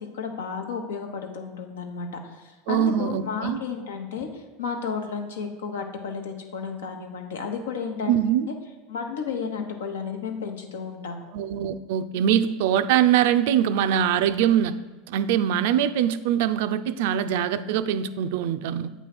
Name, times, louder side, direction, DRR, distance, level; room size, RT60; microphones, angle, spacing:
voice 1, 0.0-8.2 8.9-11.2, left 5 dB, 90° left, 4 dB, 0.9 m, -32 dB
voice 2, 2.7-3.6 8.1-8.5 11.3-14.8 15.1-18.9, right 10 dB, 70° right, 12 dB, 0.3 m, -23 dB
8.1 x 3.1 x 5.9 m, 1.3 s
hypercardioid pair, 100°, 0 cm